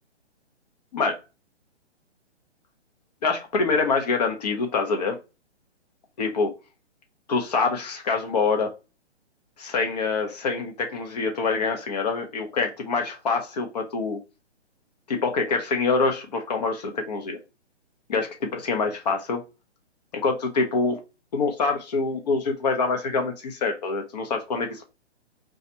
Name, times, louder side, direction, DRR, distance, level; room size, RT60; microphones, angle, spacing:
voice 1, 3.2-5.2 6.2-6.5 7.3-8.7 9.6-14.2 15.1-17.4 18.1-19.4 20.2-21.0 21.3-24.8, left 4 dB, 35° left, 4 dB, 0.7 m, -25 dB
2.6 x 2.4 x 4.1 m, 0.28 s
hypercardioid pair, 150°, 35 cm